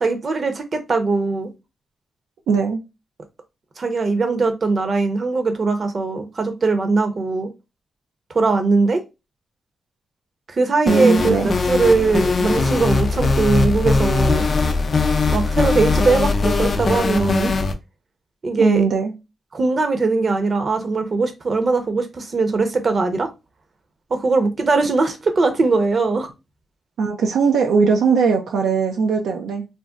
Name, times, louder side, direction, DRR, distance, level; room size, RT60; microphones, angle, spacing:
voice 1, 0.0-1.5 3.8-7.5 8.3-9.0 10.5-14.5 15.3-17.5 18.4-18.8 19.5-23.3 24.1-26.3, right 3 dB, 50° right, 0.7 m, -20 dB
voice 2, 2.5-2.8 10.9-11.5 18.6-19.1 27.0-29.7, right 5 dB, 90° right, 0.4 m, -19 dB
sound 1, 10.9-17.7, left 3 dB, 50° left, 0.5 m, -20 dB
2.6 x 2.1 x 3.5 m
cardioid pair, 65°, 0 cm